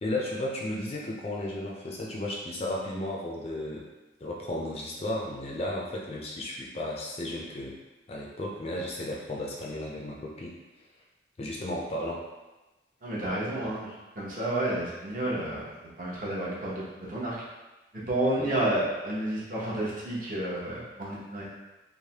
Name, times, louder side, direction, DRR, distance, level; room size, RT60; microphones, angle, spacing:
voice 1, 0.0-3.9 4.2-7.8 8.1-10.6 11.4-12.2 13.6-13.7 18.4-18.6, left 1 dB, 35° left, -3 dB, 0.4 m, -34 dB
voice 2, 13.0-13.9 14.2-15.6 16.0-17.3 17.9-21.5, right 1 dB, 50° right, -7 dB, 0.7 m, -30 dB
3.2 x 2.0 x 2.8 m, 1.1 s
head